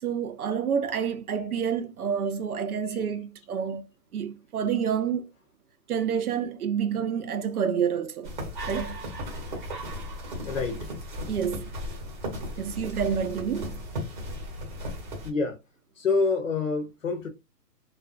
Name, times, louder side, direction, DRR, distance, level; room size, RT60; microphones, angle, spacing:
voice 1, 0.0-3.8 4.1-5.3 5.9-8.4 8.7-9.0 11.3-11.7 12.6-13.8, right 7 dB, 60° right, 0.5 m, -28 dB
sound 1, 8.2-15.3, equal, 30° right, 0.8 m, -36 dB
voice 2, 10.4-10.9 15.2-15.6 16.0-17.3, left 4 dB, 50° left, 0.6 m, -27 dB
2.4 x 2.2 x 2.4 m
hypercardioid pair, 170°, 50 cm